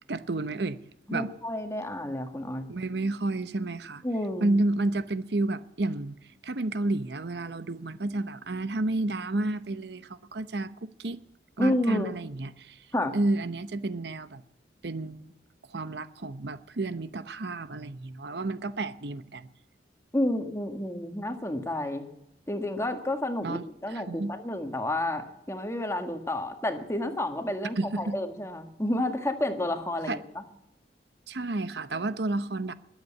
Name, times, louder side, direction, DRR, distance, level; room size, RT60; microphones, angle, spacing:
voice 1, 0.1-0.8 1.1-1.3 2.7-4.0 4.4-6.2 6.4-11.2 11.6-12.9 13.1-14.4 14.8-15.3 15.7-19.5 23.4-23.6 23.9-24.3 27.8-28.2 30.1-30.2 31.3-32.7, right 2 dB, 65° right, 0.8 m, -31 dB
voice 2, 1.1-2.7 4.0-4.5 11.6-12.1 12.9-13.2 20.1-22.1 22.5-30.4, left 1 dB, 15° left, 1.6 m, -30 dB
21.5 x 8.2 x 8.3 m
head